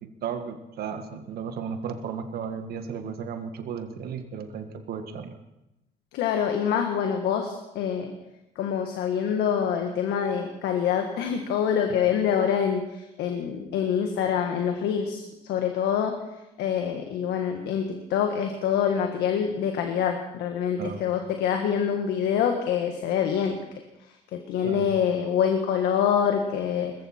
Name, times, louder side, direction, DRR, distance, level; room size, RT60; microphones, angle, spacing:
voice 1, 0.0-5.4 20.8-21.0 24.6-24.9, right 6 dB, 65° right, 7 dB, 1.8 m, -34 dB
voice 2, 6.1-8.1 8.5-16.2 16.6-23.6 24.3-26.9, left 8 dB, 85° left, 5 dB, 1.5 m, -26 dB
20.5 x 14.5 x 4.4 m, 0.92 s
cardioid pair, 110°, 17 cm